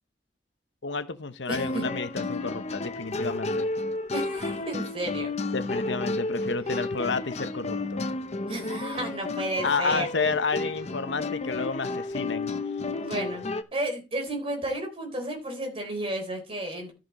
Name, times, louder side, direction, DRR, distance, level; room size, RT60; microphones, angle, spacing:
voice 1, 0.8-3.7 5.5-8.1 9.6-12.5, left 4 dB, 90° left, 1.0 m, -30 dB
sound 1, 1.5-13.6, left 2 dB, 40° left, 0.7 m, -32 dB
voice 2, 1.5-1.8 4.1-5.3 6.7-6.8 8.5-10.1 12.9-13.4 13.7-16.9, right 1 dB, 30° right, 3.8 m, -32 dB
13.5 x 5.9 x 4.2 m
head